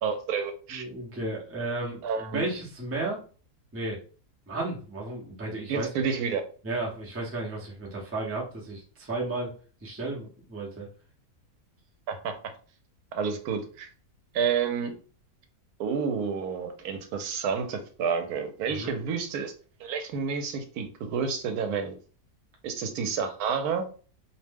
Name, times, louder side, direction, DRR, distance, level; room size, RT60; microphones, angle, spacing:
voice 1, 0.0-0.8 2.0-2.4 5.7-6.4 12.1-12.4 13.1-13.9 14.3-14.9 15.8-19.5 19.8-21.9 22.6-23.9, right 6 dB, 85° right, 6 dB, 1.1 m, -29 dB
voice 2, 0.7-3.2 3.7-4.0 4.5-5.9 6.6-9.5 9.8-10.9 18.7-18.9, right 2 dB, 20° right, -2 dB, 0.4 m, -33 dB
2.6 x 2.0 x 3.4 m, 0.39 s
omnidirectional pair, 1.6 m